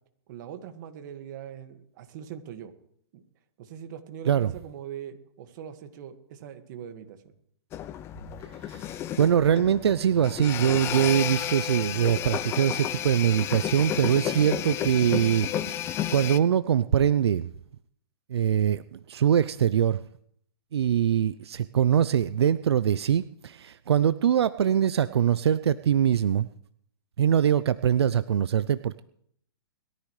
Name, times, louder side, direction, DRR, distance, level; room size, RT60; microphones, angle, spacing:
voice 1, 0.3-2.7 3.1-3.2 3.6-7.3, right 9 dB, 45° right, 7 dB, 1.9 m, -42 dB
sound 1, 7.7-16.4, left 11 dB, 20° left, 0.5 m, -32 dB
voice 2, 8.6-17.5 18.3-20.0 20.7-26.5 27.2-29.0, right 9 dB, 80° right, 15 dB, 0.5 m, -23 dB
21.5 x 13.5 x 3.3 m, 0.68 s
hypercardioid pair, 145°, 14 cm